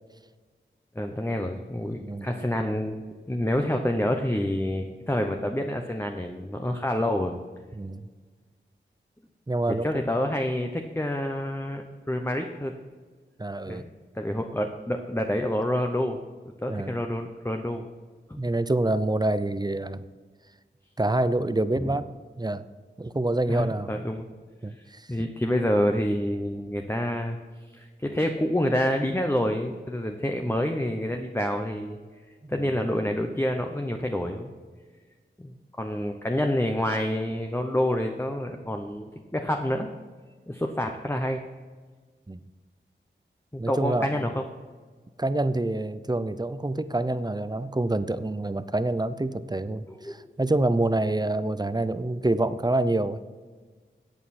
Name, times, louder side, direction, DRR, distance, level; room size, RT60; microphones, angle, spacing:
voice 1, 0.9-3.0 3.3-7.4 9.8-12.8 13.7-13.9 14.1-16.2 16.6-17.8 18.3-18.4 21.8-21.9 23.5-24.3 24.7-32.0 32.5-34.5 35.4-39.9 40.5-41.4 43.5-44.4 50.0-50.2, left 1 dB, 10° left, 4 dB, 0.9 m, -28 dB
voice 2, 2.0-2.3 7.8-8.0 9.5-9.9 13.4-13.9 16.7-16.9 18.4-20.0 21.0-22.0 22.4-22.6 23.0-23.9 24.6-25.1 32.4-32.8 42.3-42.4 43.6-44.1 45.2-53.2, right 2 dB, 20° right, 13 dB, 0.6 m, -27 dB
14.0 x 8.3 x 4.3 m, 1.5 s
cardioid pair, 45°, 21 cm